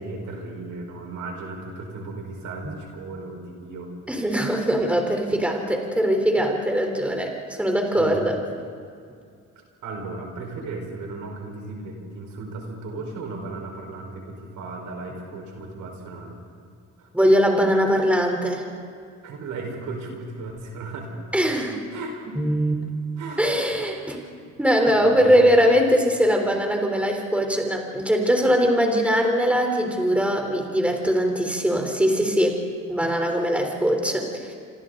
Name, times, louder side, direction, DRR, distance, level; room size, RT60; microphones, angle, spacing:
voice 1, 0.0-3.9 7.9-8.2 9.5-16.4 17.0-17.1 19.2-21.2 21.9-22.4 23.2-23.6 24.4-24.6 25.0-25.5, right 3 dB, 80° right, 1 dB, 4.9 m, -36 dB
voice 2, 4.1-8.4 17.1-18.6 21.3-21.8 22.4-22.9 23.4-24.2 24.6-32.6 32.9-34.5, equal, 5° right, 2 dB, 3.8 m, -21 dB
27.0 x 27.0 x 4.0 m, 2.3 s
cardioid pair, 90°, 30 cm